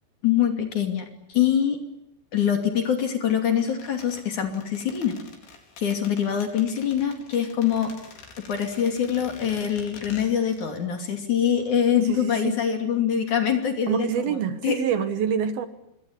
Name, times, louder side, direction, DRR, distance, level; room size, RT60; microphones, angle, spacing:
voice 1, 0.2-1.8 2.3-5.2 5.8-8.0 8.4-14.8, left 9 dB, 45° left, 5 dB, 3.8 m, -24 dB
sound 1, 3.6-10.8 11.0-11.1, left 4 dB, 80° left, 6.5 m, -46 dB
voice 2, 12.0-12.6 13.9-15.7, right 8 dB, 65° right, 10 dB, 2.9 m, -26 dB
26.5 x 22.5 x 10.0 m, 0.84 s
omnidirectional pair, 5.1 m